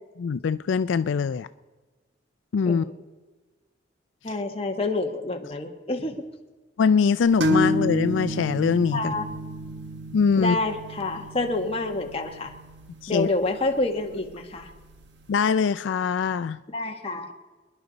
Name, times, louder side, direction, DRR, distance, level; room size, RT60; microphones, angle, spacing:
voice 1, 0.2-1.5 2.5-2.8 6.8-9.1 10.1-10.6 13.0-13.3 15.3-16.6, left 6 dB, 80° left, 13 dB, 0.4 m, -23 dB
voice 2, 2.7-3.0 4.2-6.2 8.9-9.3 10.3-12.5 13.1-14.7 16.7-17.3, left 2 dB, 30° left, 3 dB, 1.3 m, -28 dB
sound 1, 7.4-14.9, equal, 65° right, 1.3 m, -30 dB
26.0 x 11.0 x 4.0 m, 1.3 s
head